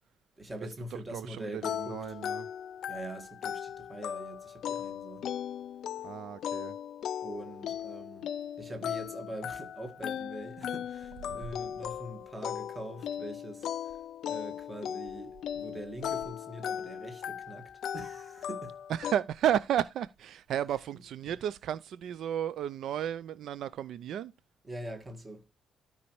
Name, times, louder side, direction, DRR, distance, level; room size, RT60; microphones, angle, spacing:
voice 1, 0.4-2.2 2.9-5.3 7.2-8.3 8.6-14.0 14.2-18.8 20.7-21.0 24.6-25.4, right 1 dB, 15° right, 1.7 m, -43 dB
voice 2, 1.1-2.4 6.0-6.7 18.9-24.3, right 10 dB, 60° right, 0.4 m, -33 dB
sound 1, 1.6-19.1, left 9 dB, 55° left, 0.4 m, -38 dB
13.0 x 5.3 x 3.1 m
cardioid pair, 175°, 0 cm